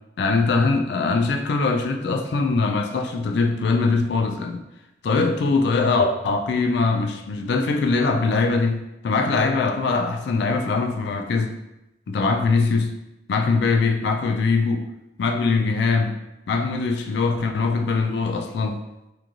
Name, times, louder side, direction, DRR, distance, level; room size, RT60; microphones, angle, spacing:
voice 1, 0.2-4.6 5.0-11.6 12.1-13.0 13.3-14.9 15.2-16.2 16.5-18.8, left 4 dB, 65° left, 4 dB, 0.3 m, -22 dB
3.0 x 2.4 x 2.5 m, 0.91 s
head